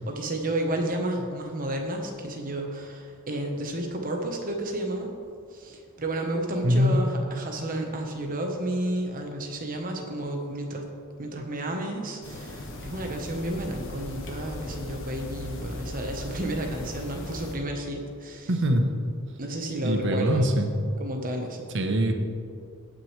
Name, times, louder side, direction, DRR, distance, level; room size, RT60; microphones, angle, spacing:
voice 1, 0.0-5.1 5.5-10.9 11.2-18.5 19.4-20.5 21.0-21.7, right 1 dB, 40° right, 2 dB, 1.2 m, -31 dB
voice 2, 6.6-7.0 18.5-18.9 19.8-20.7 21.7-22.1, equal, 55° right, 5 dB, 1.0 m, -22 dB
sound 1, 12.2-17.6, left 1 dB, 60° left, 1.4 m, -38 dB
18.0 x 6.3 x 3.3 m, 2.3 s
head